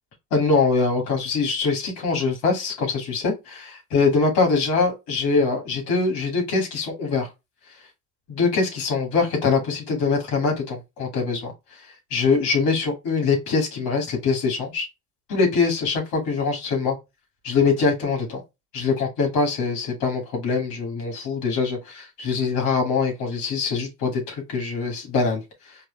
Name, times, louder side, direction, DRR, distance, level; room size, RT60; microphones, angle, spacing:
voice 1, 0.3-7.3 8.3-11.5 12.1-14.9 15.3-17.0 17.4-18.4 18.7-25.4, left 4 dB, 50° left, 2.6 m, -23 dB
4.6 x 3.2 x 3.3 m
figure-of-eight pair, 60°, 49 cm